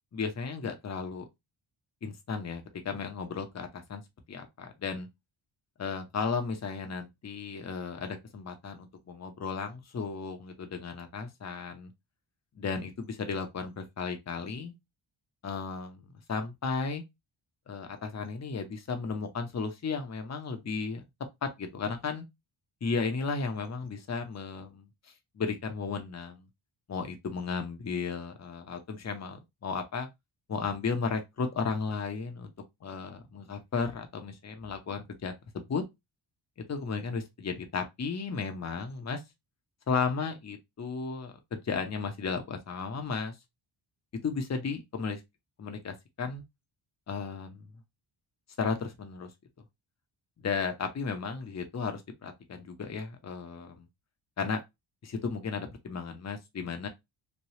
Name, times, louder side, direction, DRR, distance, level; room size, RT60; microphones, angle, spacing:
voice 1, 0.1-1.2 2.0-4.0 4.3-5.1 5.8-11.9 12.6-14.7 15.4-17.0 17.7-21.0 21.4-22.2 22.8-24.9 25.3-26.5 26.9-30.1 30.5-32.5 32.8-35.8 36.7-39.2 39.9-43.3 44.2-45.2 45.6-46.4 47.1-47.7 48.6-49.3 50.4-53.9 54.4-54.6 55.0-56.9, left 5 dB, 35° left, 0.7 m, -34 dB
3.2 x 2.3 x 2.7 m
cardioid pair, 80°, 49 cm